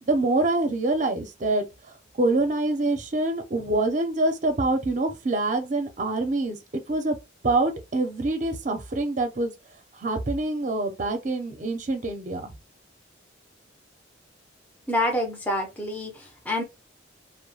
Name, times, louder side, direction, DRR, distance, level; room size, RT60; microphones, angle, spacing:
voice 1, 0.0-1.6 2.2-6.6 6.9-7.2 7.4-9.5 10.0-12.5, right 2 dB, 40° right, 0.6 m, -25 dB
voice 2, 14.9-16.6, left 1 dB, 10° left, 0.6 m, -27 dB
2.1 x 2.1 x 3.1 m
head